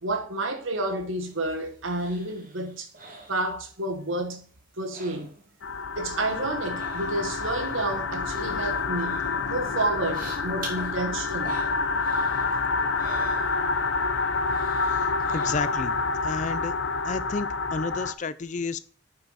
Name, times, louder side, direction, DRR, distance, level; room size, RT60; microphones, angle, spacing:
voice 1, 0.0-2.9 3.3-4.5 4.8-5.3 6.0-11.6, right 2 dB, 85° right, 1.5 m, -30 dB
sound 1, 1.0-4.0 4.3-5.7 5.9-14.1 14.4-16.0 16.4-16.5, right 3 dB, 45° right, 2.0 m, -47 dB
sound 2, 5.6-18.1, left 4 dB, 70° left, 0.7 m, -28 dB
voice 2, 15.3-15.9 16.2-16.7 17.0-18.8, left 4 dB, 40° left, 0.4 m, -31 dB
9.1 x 5.8 x 4.1 m
head